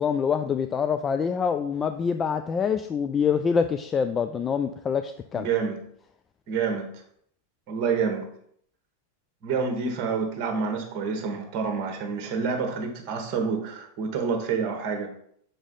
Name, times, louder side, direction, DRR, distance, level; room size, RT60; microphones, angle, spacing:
voice 1, 0.0-5.5, left 6 dB, 20° left, 8 dB, 0.3 m, -25 dB
voice 2, 5.3-5.8 6.5-6.9 7.7-8.3 9.4-15.1, right 5 dB, 40° right, 4 dB, 1.2 m, -28 dB
6.2 x 4.8 x 3.9 m, 0.67 s
figure-of-eight pair, 90°, 0 cm